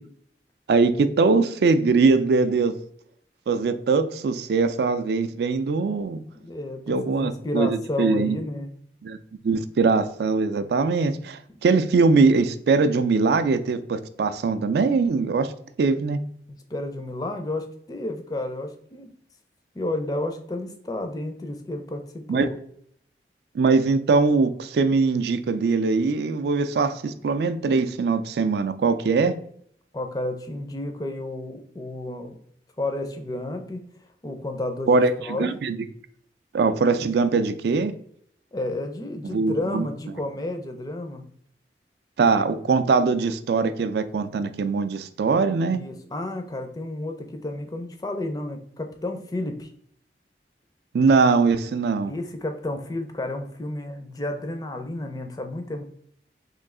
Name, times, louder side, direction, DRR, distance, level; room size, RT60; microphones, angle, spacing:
voice 1, 0.7-2.7 3.5-6.2 6.9-8.4 9.0-9.2 9.4-15.5 15.8-16.2 22.3-22.5 23.5-29.3 34.9-35.8 36.5-37.9 39.2-39.9 42.2-45.8 50.9-52.1, right 4 dB, 65° right, 11 dB, 0.3 m, -21 dB
voice 2, 6.3-8.7 16.5-19.1 19.7-22.5 29.9-32.4 32.8-33.8 34.2-35.5 38.5-41.2 45.7-49.7 52.0-55.8, left 2 dB, 20° left, 5 dB, 0.4 m, -31 dB
3.1 x 2.7 x 3.6 m, 0.66 s
head